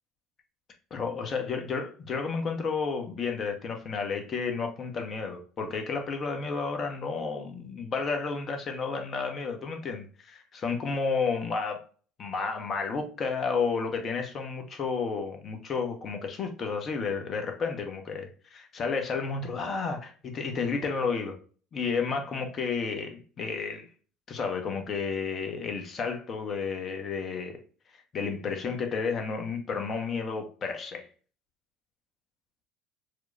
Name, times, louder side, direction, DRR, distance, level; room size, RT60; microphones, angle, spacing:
voice 1, 0.9-11.8 12.2-21.4 21.7-23.9 24.3-27.6 28.1-31.1, left 5 dB, 40° left, 4 dB, 1.0 m, -31 dB
6.3 x 2.3 x 2.6 m, 0.39 s
figure-of-eight pair, 65°, 0 cm